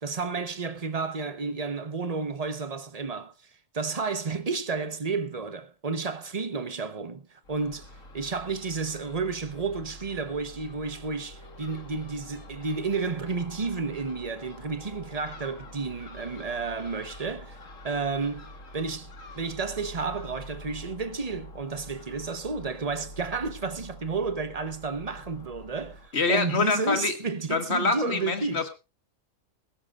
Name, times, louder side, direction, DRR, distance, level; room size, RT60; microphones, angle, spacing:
voice 1, 0.0-3.3 3.7-17.6 17.8-19.1 19.4-28.6, right 4 dB, 30° right, 1.0 m, -31 dB
Crow / Gull seagull, 7.4-26.1, left 1 dB, 80° left, 2.2 m, -46 dB
voice 2, 26.1-27.1 27.5-28.7, left 4 dB, 55° left, 1.8 m, -25 dB
18.5 x 16.0 x 2.5 m
omnidirectional pair, 1.3 m